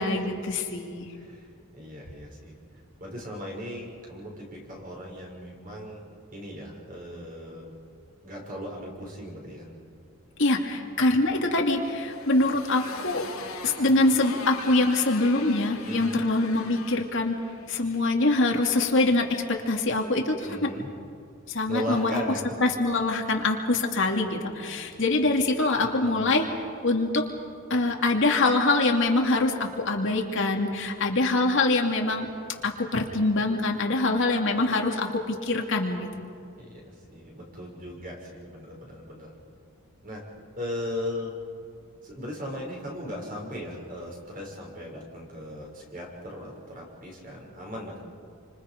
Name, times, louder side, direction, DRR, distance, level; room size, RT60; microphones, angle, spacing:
voice 1, 0.0-1.1 10.4-13.2 13.6-17.4 17.7-20.7 21.5-22.2 22.6-26.5 26.8-27.2 27.7-32.3 32.6-36.3, left 2 dB, 60° left, 1 dB, 2.5 m, -24 dB
voice 2, 1.2-1.5 1.7-2.5 3.0-6.0 6.3-7.7 8.2-9.7 15.8-16.2 20.5-20.9 21.7-22.4 25.8-26.3 36.6-39.3 40.0-40.2 40.6-41.3 42.0-48.0, left 1 dB, 40° right, -1 dB, 6.8 m, -37 dB
Motorcycle, 11.6-18.1, left 5 dB, 80° left, 2.8 m, -41 dB
29.0 x 26.0 x 5.3 m, 2.4 s
head